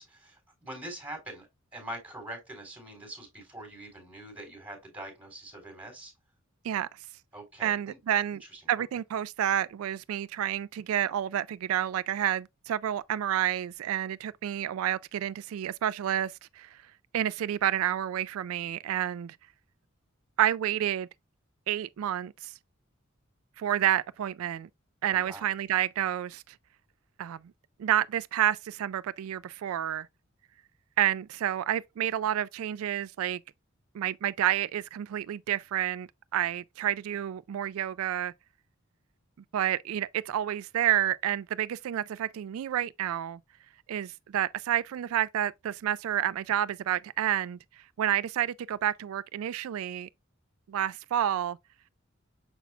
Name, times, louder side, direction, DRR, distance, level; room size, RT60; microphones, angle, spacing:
voice 1, 0.0-1.5 1.7-6.1 7.3-8.0 8.5-8.6 25.1-25.5, right 1 dB, 10° right, 3.9 m, -43 dB
voice 2, 7.6-8.4 8.7-16.8 17.1-19.4 20.4-21.1 21.7-22.5 23.6-24.7 25.0-26.5 27.2-27.4 27.8-30.1 31.0-33.4 33.9-38.3 39.5-43.4 43.9-47.6 48.0-50.1 50.7-51.6, right 11 dB, 90° right, 0.3 m, -29 dB
7.0 x 5.9 x 2.4 m
head